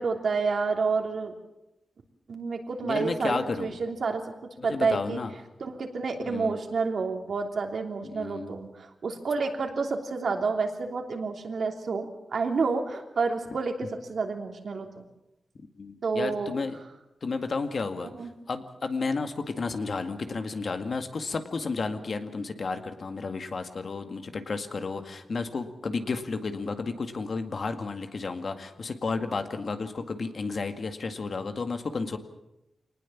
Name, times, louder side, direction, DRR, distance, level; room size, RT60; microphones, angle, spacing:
voice 1, 0.0-1.3 2.3-4.2 4.6-5.2 5.6-15.0 16.0-16.5 18.0-18.3, right 4 dB, 70° right, 3 dB, 3.1 m, -29 dB
voice 2, 2.8-3.7 4.6-5.3 6.2-6.6 8.0-8.6 15.8-16.8 17.2-32.2, left 4 dB, 60° left, 7 dB, 2.0 m, -32 dB
25.0 x 19.5 x 7.3 m, 0.92 s
wide cardioid pair, 95°, 0 cm